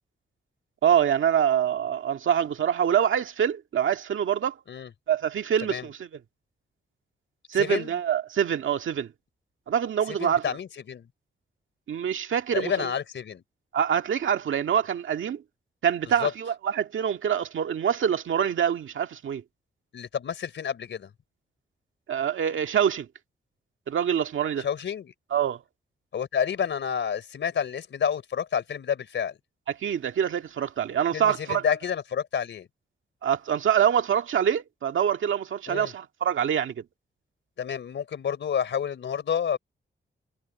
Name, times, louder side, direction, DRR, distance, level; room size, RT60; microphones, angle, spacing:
voice 1, 0.8-4.6 5.1-6.1 7.5-9.1 9.7-10.4 11.9-12.9 13.7-15.4 15.8-19.4 22.1-23.1 23.9-24.7 25.3-25.6 29.8-31.6 33.2-36.8, right 9 dB, 80° right, 1.9 m, -25 dB
voice 2, 7.5-7.9 10.1-11.1 12.5-13.4 16.2-16.3 19.9-21.1 24.6-25.1 26.1-29.4 31.1-32.7 35.7-35.9 37.6-39.6, left 8 dB, 70° left, 4.1 m, -29 dB
wide cardioid pair, 160°, 20 cm